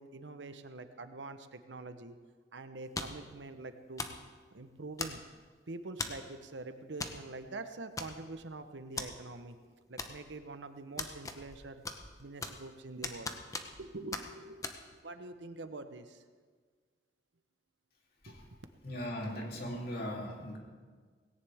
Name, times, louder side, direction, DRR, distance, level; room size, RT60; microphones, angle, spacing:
voice 1, 0.0-2.2 2.5-4.2 4.5-5.2 5.7-9.6 9.9-11.8 12.2-13.3 13.8-14.7 15.0-16.2 18.3-18.4, right 2 dB, 85° right, 9 dB, 0.9 m, -45 dB
sound 1, 2.9-3.3 4.0-4.2 5.0-5.4 6.0-6.3 7.0-7.2 7.5-7.6 8.0-8.4 9.0-9.1 10.0-10.4 11.0-11.6 11.8-12.7 13.0-13.8 14.1-14.3 14.6-14.8, left 3 dB, 20° left, 0.9 m, -39 dB
voice 2, 18.8-20.6, equal, 60° left, -1 dB, 3.1 m, -39 dB
18.5 x 17.0 x 3.5 m, 1.5 s
head